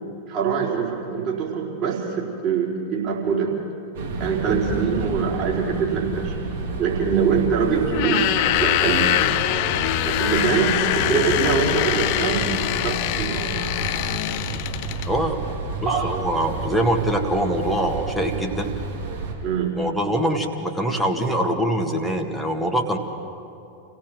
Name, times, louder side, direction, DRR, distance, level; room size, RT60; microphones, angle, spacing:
voice 1, 0.3-3.5 4.2-6.4 6.8-8.3 8.6-9.4 10.0-12.5 12.8-13.6 15.8-16.1 19.4-19.8, right 6 dB, 35° right, -3 dB, 4.6 m, -24 dB
sound 1, 3.9-19.3, right 4 dB, 60° right, 3.7 m, -31 dB
sound 2, 7.9-15.1, left 14 dB, 45° left, 0.6 m, -23 dB
voice 2, 15.1-15.4 15.8-18.7 19.8-23.0, right 1 dB, ahead, 0 dB, 1.9 m, -23 dB
28.5 x 17.0 x 6.2 m, 2.6 s
figure-of-eight pair, 90°, 0 cm